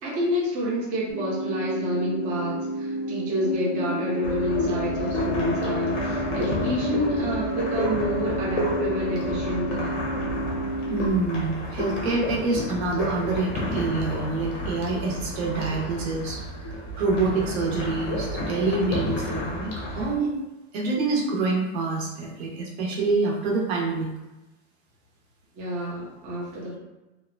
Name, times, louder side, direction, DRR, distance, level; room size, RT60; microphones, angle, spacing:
voice 1, 0.0-10.0 25.5-26.8, left 1 dB, 20° right, -5 dB, 0.5 m, -29 dB
sound 1, 1.1-11.1, right 1 dB, 85° right, 1.1 m, -31 dB
Musical instrument, 2.7-10.7, left 4 dB, 60° left, 0.5 m, -38 dB
sound 2, 4.2-20.1, left 1 dB, 85° left, 0.8 m, -31 dB
voice 2, 10.9-20.3 20.7-24.1, right 3 dB, 65° right, -1 dB, 0.9 m, -26 dB
2.8 x 2.1 x 2.4 m, 1.0 s
supercardioid pair, 160°, 35 cm